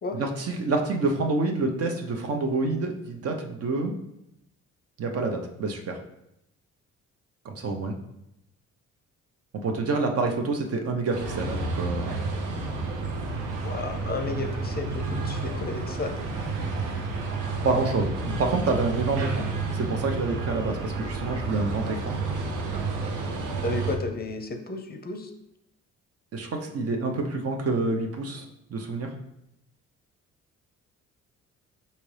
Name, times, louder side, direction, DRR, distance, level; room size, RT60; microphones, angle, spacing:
voice 1, 0.1-3.9 5.0-6.0 7.4-8.0 9.6-12.2 17.6-19.5 19.7-22.2 26.3-28.4 28.7-29.1, right 3 dB, 50° right, 3 dB, 0.7 m, -27 dB
sound 1, 11.1-24.0, right 3 dB, 85° right, 0.7 m, -30 dB
voice 2, 13.6-16.1 23.6-25.3, left 3 dB, 30° left, 4 dB, 0.5 m, -32 dB
5.0 x 2.8 x 3.2 m, 0.82 s
cardioid pair, 90°, 30 cm